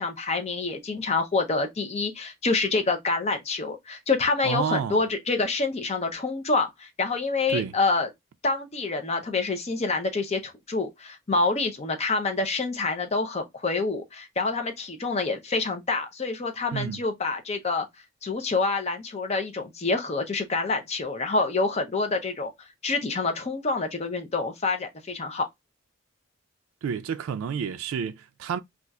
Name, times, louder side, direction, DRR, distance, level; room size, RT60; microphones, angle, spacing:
voice 1, 0.0-8.1 8.4-17.9 18.2-22.5 22.8-25.5, left 3 dB, 30° left, 0.5 m, -27 dB
voice 2, 4.4-5.0 7.5-7.7 16.7-17.0 26.8-28.6, right 7 dB, 80° right, 0.3 m, -30 dB
2.4 x 2.3 x 4.0 m
head